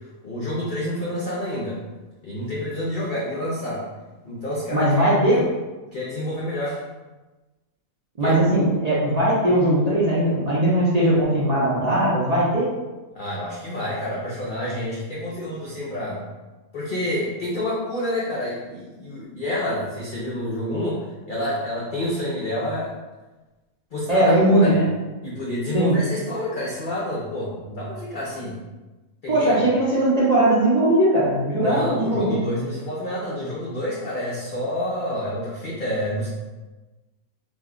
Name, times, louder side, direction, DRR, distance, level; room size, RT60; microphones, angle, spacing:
voice 1, 0.2-1.8 2.2-3.8 4.2-5.4 5.9-6.8 8.2-8.4 13.1-16.2 16.7-22.9 23.9-24.7 25.2-28.6 29.2-29.6 31.6-36.3, left 1 dB, 60° left, -7 dB, 0.5 m, -28 dB
voice 2, 4.7-5.4 8.2-12.7 24.1-24.9 25.7-26.0 29.3-32.4, right 1 dB, 45° right, -8 dB, 0.5 m, -19 dB
2.6 x 2.2 x 3.7 m, 1.2 s
omnidirectional pair, 1.5 m